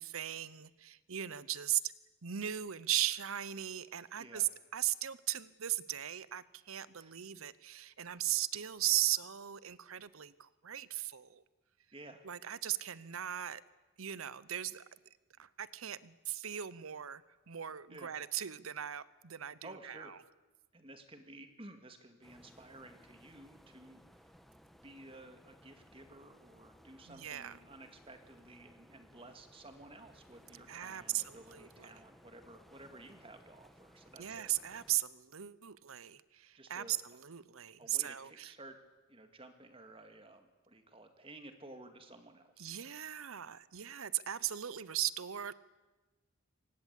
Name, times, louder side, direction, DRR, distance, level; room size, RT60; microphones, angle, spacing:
voice 1, 0.0-1.9 2.2-11.4 12.2-13.6 14.0-14.8 15.4-17.2 17.5-20.2 27.1-27.6 30.7-31.9 34.2-38.5 42.6-45.5, right 12 dB, 80° right, 18 dB, 0.8 m, -38 dB
voice 2, 11.9-12.3 17.9-18.1 19.6-20.1 20.7-24.3 24.8-34.5 36.5-37.0 37.8-38.8 39.1-42.7, right 2 dB, 25° right, 7 dB, 2.2 m, -54 dB
sound 1, 22.2-35.0, equal, ahead, 1.2 m, -61 dB
24.5 x 19.5 x 8.3 m, 1.2 s
head